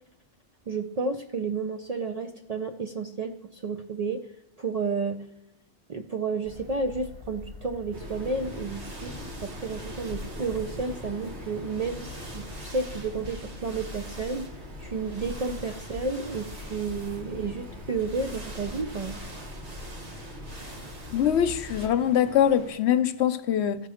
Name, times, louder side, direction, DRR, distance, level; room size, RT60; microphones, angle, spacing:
voice 1, 0.7-4.3 4.6-5.2 5.9-19.2, right 4 dB, 55° right, 0.4 m, -31 dB
sound 1, 6.4-21.9, left 1 dB, 35° right, 1.2 m, -43 dB
Waves surf, 7.9-22.7, equal, 70° right, 1.8 m, -43 dB
voice 2, 21.1-23.8, left 9 dB, 75° left, 0.8 m, -23 dB
14.5 x 5.8 x 4.9 m
omnidirectional pair, 1.2 m